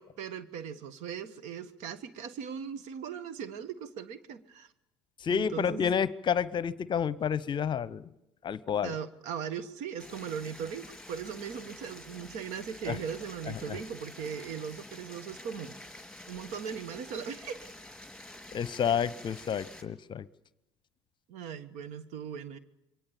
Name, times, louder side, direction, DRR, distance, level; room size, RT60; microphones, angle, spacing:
voice 1, 0.0-4.7 5.3-5.9 8.8-15.8 16.3-17.7 21.3-22.6, right 7 dB, 55° right, 14 dB, 1.5 m, -39 dB
voice 2, 5.2-8.1 8.4-8.9 12.9-13.0 18.5-20.3, left 7 dB, 35° left, 19 dB, 0.9 m, -29 dB
Stream, 10.0-19.8, left 1 dB, 5° left, 3.7 m, -48 dB
27.5 x 23.5 x 7.1 m, 0.89 s
figure-of-eight pair, 60°, 14 cm